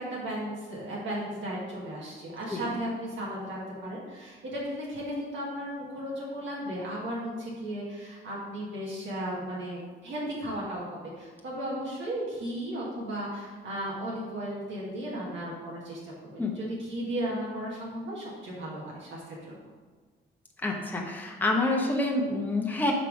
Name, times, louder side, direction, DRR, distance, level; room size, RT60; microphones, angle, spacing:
voice 1, 0.0-19.6, right 1 dB, 70° right, -5 dB, 1.7 m, -35 dB
voice 2, 20.6-22.9, left 2 dB, 10° left, -1 dB, 0.9 m, -27 dB
5.9 x 3.3 x 5.2 m, 1.5 s
cardioid pair, 90°, 20 cm